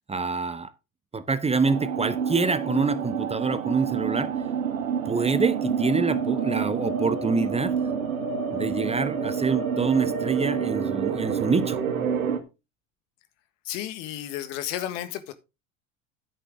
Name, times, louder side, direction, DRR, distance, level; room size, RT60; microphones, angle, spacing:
voice 1, 0.1-0.7 1.1-4.3 5.1-7.8 8.5-11.8, right 4 dB, 15° right, 0.9 m, -26 dB
sound 1, 1.6-12.4, right 7 dB, 85° right, 1.6 m, -28 dB
voice 2, 13.6-15.3, left 12 dB, 65° left, 1.6 m, -32 dB
10.0 x 9.2 x 3.5 m
hypercardioid pair, 80°, 40 cm